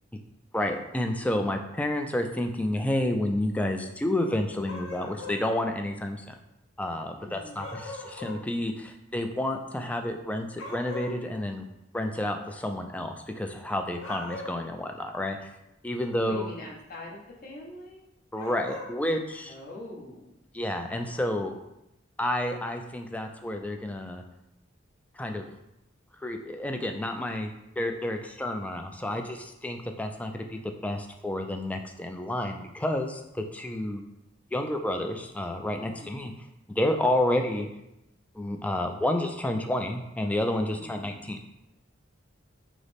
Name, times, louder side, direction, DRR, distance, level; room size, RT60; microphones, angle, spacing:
voice 1, 0.5-6.3 6.8-11.6 11.9-15.5 15.8-16.5 18.3-19.5 20.5-21.5 22.2-24.2 25.2-25.5 26.2-27.5 27.8-34.0 34.5-36.3 36.7-37.7 38.3-41.4, left 1 dB, 5° left, 4 dB, 0.3 m, -30 dB
sound 1, 4.6-5.4 7.6-8.4 10.6-11.2 13.9-14.7 18.3-18.9, left 2 dB, 85° left, 0.7 m, -40 dB
voice 2, 7.2-7.8 16.2-18.0 19.4-20.3 35.8-36.2 40.7-41.1, left 1 dB, 50° left, -3 dB, 1.1 m, -44 dB
6.2 x 2.1 x 3.4 m, 0.88 s
head